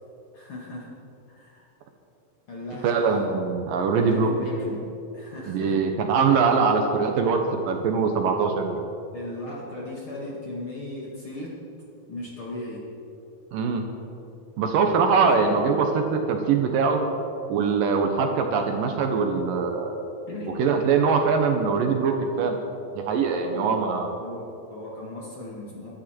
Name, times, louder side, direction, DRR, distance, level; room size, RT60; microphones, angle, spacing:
voice 1, 0.3-0.9 1.3-1.7 2.5-3.3 3.9-5.8 6.6-6.7 9.1-11.6 12.1-12.9 15.2-15.3 20.3-20.6 23.4-23.8 24.2-25.9, left 1 dB, 45° left, -4 dB, 2.1 m, -37 dB
voice 2, 2.8-4.3 5.5-8.8 13.5-13.8 14.6-17.0 17.5-20.0 20.6-22.6 23.0-24.1, right 5 dB, 70° right, 4 dB, 2.5 m, -22 dB
23.0 x 11.5 x 4.4 m, 2.7 s
omnidirectional pair, 4.5 m